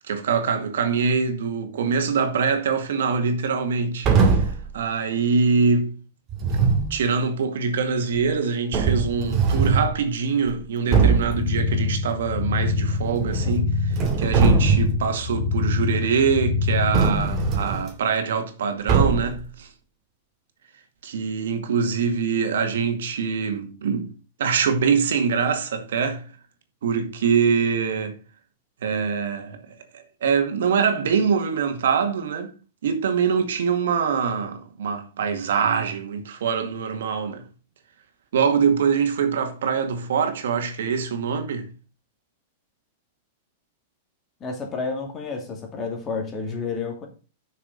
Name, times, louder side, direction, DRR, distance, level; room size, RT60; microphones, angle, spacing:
voice 1, 0.0-6.0 6.9-19.7 21.0-24.1 24.4-26.2 26.8-28.2 28.8-32.5 32.8-37.4 38.3-41.7, right 6 dB, 85° right, 2.1 m, -24 dB
sound 1, 4.0-4.7 6.3-6.9 8.2-8.3 8.7-9.9 10.5-10.6 10.9-11.4 13.0-13.6 13.9-15.0 16.9-17.9 18.9-19.4, right 5 dB, 30° right, 2.3 m, -21 dB
sound 2, 11.2-17.5, left 4 dB, 75° left, 2.3 m, -25 dB
voice 2, 44.4-47.1, left 4 dB, 25° left, 2.6 m, -30 dB
6.7 x 6.5 x 6.6 m
supercardioid pair, 150°, 0 cm